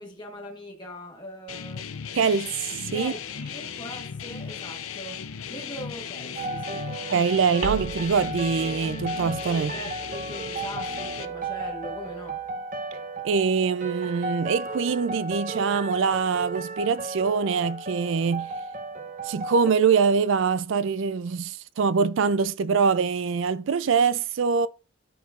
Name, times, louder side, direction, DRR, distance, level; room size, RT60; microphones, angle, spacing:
voice 1, 0.0-1.9 2.9-6.8 9.5-12.4, left 1 dB, 20° left, 1.2 m, -41 dB
sound 1, 1.5-11.3, left 7 dB, 85° left, 0.7 m, -36 dB
voice 2, 2.1-3.1 7.1-9.7 13.2-18.5 19.2-24.7, right 5 dB, 65° right, 0.4 m, -24 dB
sound 2, 6.4-19.7, right 3 dB, 40° right, 1.2 m, -35 dB
sound 3, 7.6-12.5, right 3 dB, 85° right, 1.5 m, -40 dB
13.0 x 4.6 x 2.5 m
head